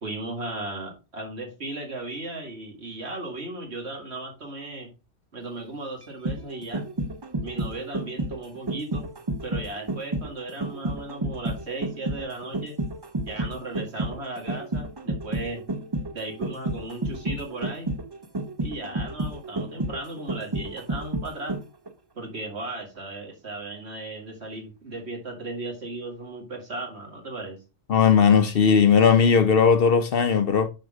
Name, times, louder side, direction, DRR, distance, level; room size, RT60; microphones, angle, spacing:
voice 1, 0.0-4.9 5.3-6.9 7.4-9.1 9.4-12.8 13.2-15.6 16.1-17.9 18.6-21.5 22.2-27.6, right 2 dB, 65° right, 2.3 m, -36 dB
sound 1, 6.0-21.9 22.2-22.3, right 2 dB, 25° right, 0.6 m, -31 dB
voice 2, 27.9-30.7, left 6 dB, 60° left, 0.9 m, -18 dB
6.4 x 5.8 x 3.7 m
omnidirectional pair, 1.2 m